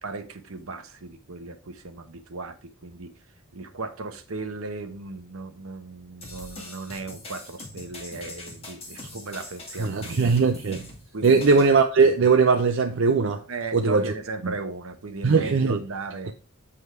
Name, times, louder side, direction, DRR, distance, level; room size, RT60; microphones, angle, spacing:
voice 1, 0.0-3.1 3.5-10.2 11.1-11.5 13.5-16.3, right 3 dB, 70° right, 0.9 m, -36 dB
sound 1, 6.2-11.7, left 2 dB, 25° left, 1.9 m, -42 dB
voice 2, 9.8-10.9 11.2-13.4 13.7-14.1 14.4-14.5 15.2-15.8, right 4 dB, 55° right, 0.5 m, -20 dB
8.0 x 3.6 x 4.6 m
head